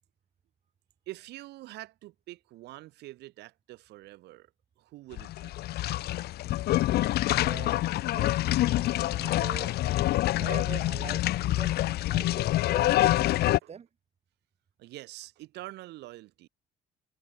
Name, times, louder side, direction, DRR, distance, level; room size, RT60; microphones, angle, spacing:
voice 1, 1.1-5.5 13.6-13.7 14.8-16.5, right 17 dB, 80° right, 6.2 m, -45 dB
sound 1, 5.1-13.6, left 15 dB, 70° left, 0.9 m, -26 dB
voice 2, 7.2-7.8 8.1-8.5 9.1-9.7 10.4-13.0 13.4-13.9, right 7 dB, 40° right, 5.8 m, -44 dB
cardioid pair, 110°, 17 cm